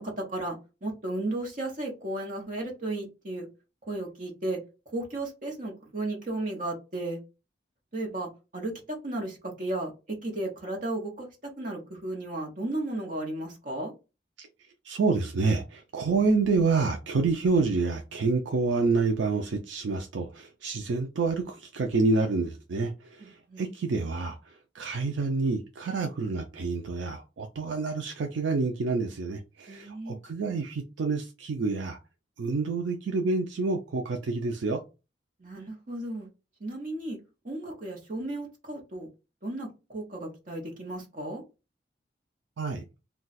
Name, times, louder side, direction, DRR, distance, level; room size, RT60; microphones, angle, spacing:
voice 1, 0.0-3.5 3.9-4.6 4.9-7.2 7.9-11.3 11.6-13.9 23.2-23.6 29.7-30.2 35.4-36.3 36.6-37.2 37.4-39.1 39.4-41.4, right 2 dB, 45° right, 0.9 m, -34 dB
voice 2, 14.8-32.0 32.4-34.8 42.6-42.8, right 3 dB, 75° right, 0.4 m, -28 dB
2.3 x 2.3 x 3.9 m
head